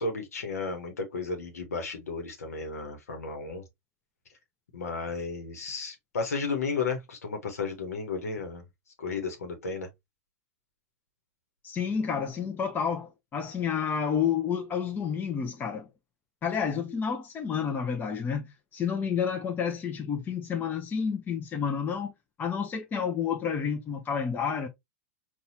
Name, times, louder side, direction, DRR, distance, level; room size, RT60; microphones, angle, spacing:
voice 1, 0.0-3.6 4.7-8.6 9.0-9.9, left 4 dB, 90° left, 0.9 m, -33 dB
voice 2, 11.6-15.9 16.4-22.1 22.4-24.7, left 7 dB, 25° left, 0.6 m, -30 dB
4.0 x 2.3 x 2.8 m
hypercardioid pair, 110°, 8 cm